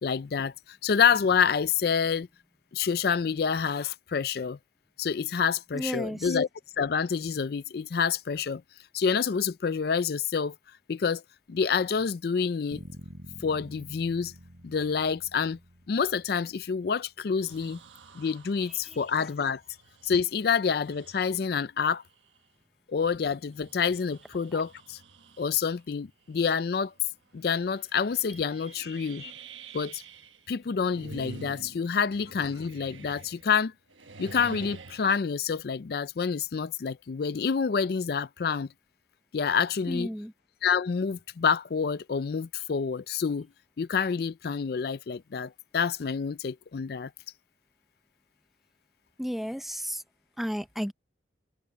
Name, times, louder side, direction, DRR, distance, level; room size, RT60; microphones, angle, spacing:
voice 1, 0.0-2.3 2.7-4.6 5.0-6.5 6.8-8.6 8.9-10.5 10.9-11.2 11.5-12.8 13.4-14.3 14.6-15.6 15.9-17.8 18.1-19.6 20.0-22.0 22.9-25.0 25.4-26.9 27.3-29.3 29.7-30.0 30.5-33.7 34.2-38.7 39.3-40.1 40.6-43.5 43.8-47.1, left 6 dB, 55° left, 0.4 m, -28 dB
voice 2, 5.7-6.3 18.8-19.0 24.5-24.6 39.9-40.3 49.2-50.0 50.4-50.9, equal, ahead, 0.8 m, -33 dB
sound 1, 12.7-16.8, equal, 55° right, 6.2 m, -48 dB
sound 2, 17.4-21.6 22.1-22.3 23.3-25.8 26.3-26.7 27.0-27.1 27.6-30.4 30.7-33.6 33.9-35.1, right 3 dB, 85° right, 1.3 m, -48 dB
head